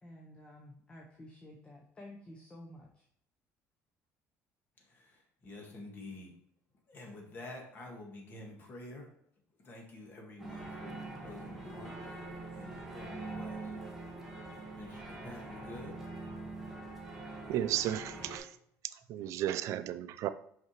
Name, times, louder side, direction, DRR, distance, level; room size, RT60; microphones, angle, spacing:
voice 1, 0.0-3.0, left 1 dB, 15° left, 0.8 m, -52 dB
voice 2, 4.8-6.3 6.9-9.1 9.6-12.2 12.5-13.8 14.7-16.0, left 2 dB, 35° left, 1.6 m, -49 dB
sound 1, 10.4-18.4, right 2 dB, 5° right, 1.3 m, -44 dB
voice 3, 17.5-18.6 18.9-20.3, right 12 dB, 60° right, 0.4 m, -34 dB
5.8 x 5.7 x 3.0 m
cardioid pair, 155°, 6 cm